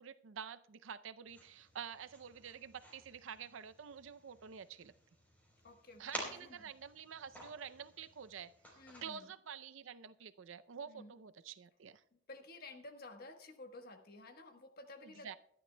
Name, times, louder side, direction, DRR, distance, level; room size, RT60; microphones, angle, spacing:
voice 1, 0.0-4.9 6.0-12.0 15.0-15.3, right 7 dB, 80° right, 13 dB, 0.5 m, -49 dB
sound 1, 1.2-9.0, equal, 10° left, 3.7 m, -52 dB
voice 2, 5.6-6.7 8.7-9.3 10.9-11.1 12.3-15.4, left 2 dB, 50° left, 6 dB, 1.2 m, -53 dB
22.0 x 11.0 x 2.2 m, 0.71 s
head